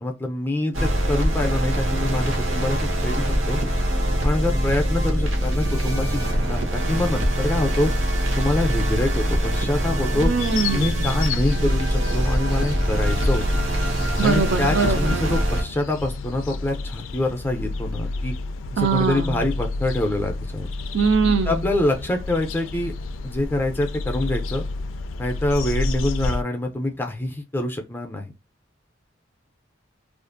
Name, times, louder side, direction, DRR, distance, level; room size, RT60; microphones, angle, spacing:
voice 1, 0.0-3.6 4.2-7.9 8.4-10.3 10.7-13.4 14.2-18.3 18.7-20.7 21.5-22.9 23.2-24.6 25.2-28.3, left 1 dB, 10° left, 0.5 m, -25 dB
sound 1, 0.7-15.6, equal, 85° right, 0.9 m, -23 dB
voice 2, 10.2-11.1 14.2-15.2 18.8-19.5 20.9-21.7, right 5 dB, 65° right, 0.5 m, -22 dB
sound 2, 10.4-26.4, left 3 dB, 85° left, 0.3 m, -30 dB
2.5 x 2.4 x 2.5 m
head